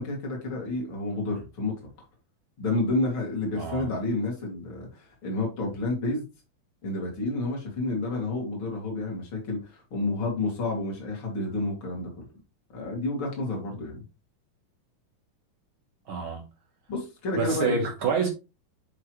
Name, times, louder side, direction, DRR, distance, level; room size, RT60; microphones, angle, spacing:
voice 1, 0.0-1.8 2.6-6.2 6.8-12.2 12.7-14.0 16.9-17.8, left 2 dB, 35° left, 3.0 m, -30 dB
voice 2, 3.6-3.9 16.1-16.5 17.3-18.3, right 5 dB, 75° right, 1.1 m, -27 dB
11.0 x 3.9 x 3.1 m
omnidirectional pair, 4.2 m